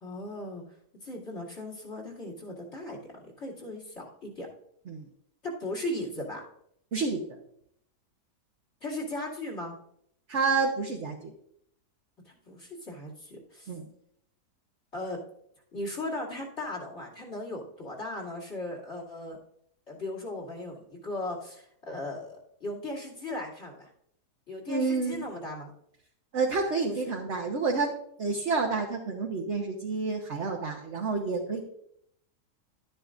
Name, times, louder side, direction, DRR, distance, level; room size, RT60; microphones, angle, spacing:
voice 1, 0.0-0.6 1.0-3.0 3.4-4.5 5.4-6.4 8.8-9.8 12.2-13.7 14.9-15.2 15.7-19.4 19.9-23.9 24.5-25.7 26.9-27.2, left 1 dB, 40° left, -2 dB, 2.7 m, -37 dB
voice 2, 6.9-7.2 10.3-11.3 13.7-13.8 24.7-25.3 26.3-27.9 28.2-31.6, right 4 dB, 50° right, 1 dB, 1.2 m, -29 dB
12.0 x 10.5 x 2.5 m, 0.71 s
omnidirectional pair, 1.7 m